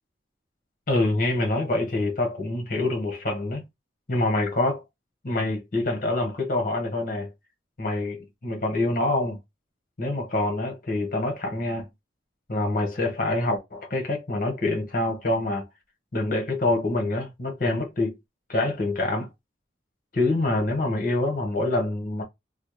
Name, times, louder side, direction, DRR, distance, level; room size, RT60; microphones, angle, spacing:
voice 1, 0.9-3.6 4.1-4.8 5.2-7.3 7.8-9.4 10.0-11.9 12.5-15.7 16.1-18.1 18.5-19.3 20.1-22.2, left 2 dB, 45° left, 1.0 m, -26 dB
3.4 x 2.0 x 3.0 m
head